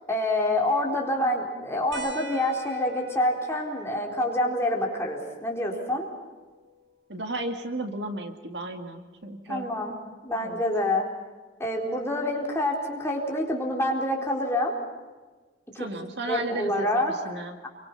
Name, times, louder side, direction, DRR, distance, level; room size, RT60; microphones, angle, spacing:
voice 1, 0.1-6.1 9.5-9.9 10.2-11.1 11.6-14.8 15.7-15.9 16.3-17.7, left 1 dB, 15° left, -1 dB, 4.1 m, -27 dB
sound 1, 1.9-7.0 8.5-8.6 10.3-10.4, equal, 85° right, 5.9 m, -46 dB
voice 2, 7.1-9.7 10.4-10.6 15.8-16.9 17.2-17.6, right 2 dB, 70° right, 5 dB, 2.2 m, -34 dB
28.0 x 24.5 x 5.6 m, 1.3 s
head